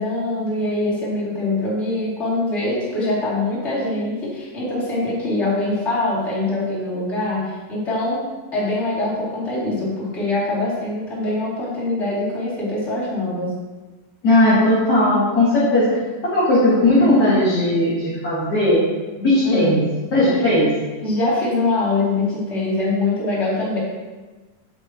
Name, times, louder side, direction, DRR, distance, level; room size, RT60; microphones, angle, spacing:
voice 1, 0.0-8.2 8.5-13.5 19.4-19.7 21.0-23.8, left 2 dB, 20° left, -9 dB, 2.3 m, -23 dB
voice 2, 14.2-16.0 16.2-18.8 19.2-19.8 20.1-20.7, left 1 dB, 40° left, -10 dB, 1.8 m, -17 dB
7.6 x 7.6 x 2.9 m, 1.3 s
omnidirectional pair, 4.2 m